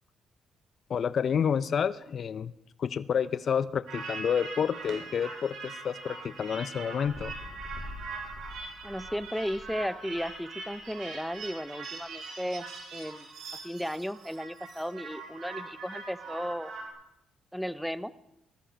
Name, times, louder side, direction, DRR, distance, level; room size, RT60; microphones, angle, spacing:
voice 1, 0.9-2.5 2.8-7.3, left 7 dB, 55° left, 14 dB, 0.6 m, -29 dB
sound 1, 3.9-16.9, right 4 dB, 70° right, 4.6 m, -42 dB
sound 2, 7.0-10.8 11.4-11.5, left 2 dB, 30° left, 7.2 m, -46 dB
voice 2, 8.8-13.3 13.6-16.7 17.5-18.1, equal, ahead, 15 dB, 0.7 m, -35 dB
19.0 x 13.0 x 5.2 m, 0.86 s
cardioid pair, 90°, 0 cm